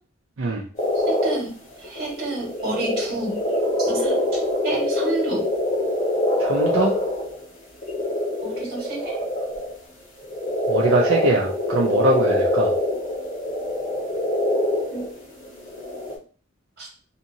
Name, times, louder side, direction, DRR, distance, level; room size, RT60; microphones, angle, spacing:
sound 1, 0.8-1.4 1.7-7.4 7.8-9.7 10.2-16.2, left 1 dB, 40° left, 1.2 m, -24 dB
voice 1, 0.9-1.5 1.8-3.4 3.8-4.1 4.6-5.4 8.4-9.2 14.9-15.0 16.8-16.9, right 2 dB, 50° right, -2 dB, 1.6 m, -30 dB
voice 2, 6.4-6.9 10.7-12.7, right 2 dB, 80° right, -2 dB, 0.5 m, -22 dB
3.5 x 2.8 x 2.7 m, 0.39 s
head